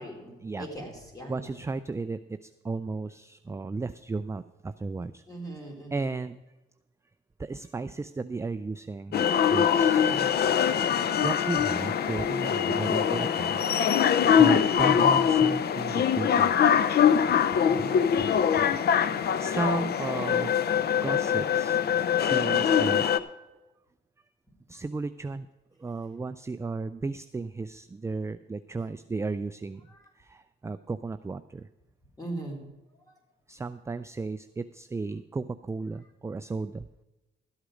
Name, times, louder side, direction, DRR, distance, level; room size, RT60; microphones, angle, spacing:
voice 1, 0.0-1.5 5.3-6.1 9.9-10.3 17.5-18.1 29.9-30.0 32.2-32.6, right 1 dB, 15° left, 1 dB, 3.8 m, -40 dB
voice 2, 1.3-2.2 2.6-5.2 5.9-6.4 7.4-9.2 9.5-10.3 11.2-13.6 14.4-16.9 18.2-18.3 19.4-20.5 21.0-21.8 22.2-23.1 24.7-25.5 25.8-29.8 30.3-31.7 33.5-36.8, right 3 dB, 15° right, 12 dB, 0.4 m, -34 dB
sound 1, 9.1-23.2, left 8 dB, 55° left, 0.6 m, -23 dB
13.0 x 8.2 x 5.0 m, 1.1 s
cardioid pair, 90°, 20 cm